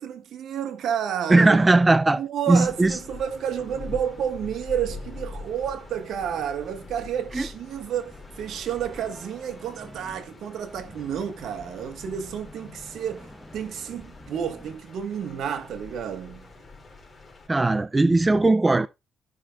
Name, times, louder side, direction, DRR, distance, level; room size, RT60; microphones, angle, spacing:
voice 1, 0.0-1.6 2.2-16.5, right 9 dB, 70° right, 1.4 m, -30 dB
voice 2, 1.3-2.2 2.5-3.0 7.3-7.5 17.5-18.9, right 2 dB, 20° right, 0.4 m, -18 dB
sound 1, 2.5-17.5, left 3 dB, 25° left, 3.3 m, -44 dB
sound 2, 7.9-14.8, equal, 5° right, 1.1 m, -49 dB
14.0 x 5.9 x 2.4 m
cardioid pair, 90°, 0 cm